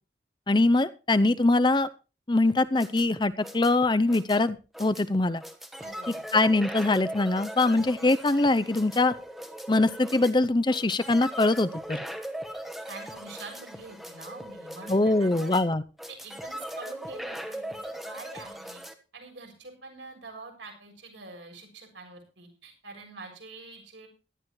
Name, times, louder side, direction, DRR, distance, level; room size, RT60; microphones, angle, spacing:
voice 1, 0.5-1.9 2.3-5.4 6.3-9.1 9.7-12.0 14.9-15.8, left 2 dB, 25° left, 13 dB, 0.6 m, -23 dB
sound 1, 2.5-18.9, right 1 dB, ahead, 1.3 m, -39 dB
voice 2, 5.8-6.2 12.9-15.6 16.1-18.8 19.1-24.1, right 3 dB, 75° right, 2 dB, 7.1 m, -45 dB
17.5 x 13.0 x 3.2 m, 0.33 s
head